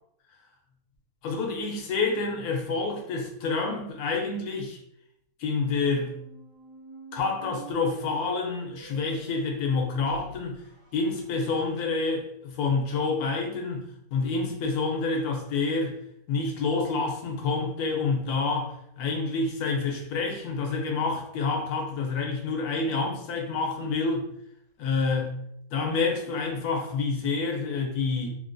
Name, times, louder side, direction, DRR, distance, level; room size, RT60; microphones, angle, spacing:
voice 1, 1.2-4.8 5.4-6.2 7.1-10.6 10.9-16.0 16.3-24.3 24.8-25.4 25.7-28.3, left 4 dB, 85° left, 2 dB, 1.1 m, -28 dB
sound 1, 5.8-11.7, right 4 dB, 80° right, 1.4 m, -48 dB
3.2 x 2.2 x 2.5 m, 0.70 s
omnidirectional pair, 1.6 m